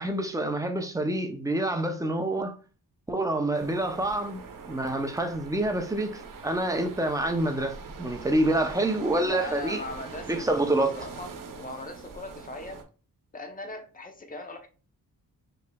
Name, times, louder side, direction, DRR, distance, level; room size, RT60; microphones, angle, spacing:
voice 1, 0.0-2.6 3.1-4.4 4.7-9.8 10.3-11.0, right 1 dB, 10° right, 0.6 m, -27 dB
sound 1, 3.5-12.8, right 5 dB, 65° right, 0.9 m, -42 dB
voice 2, 9.2-12.9 13.3-14.7, left 2 dB, 25° left, 0.8 m, -39 dB
5.4 x 3.2 x 2.3 m
wide cardioid pair, 145°, 35 cm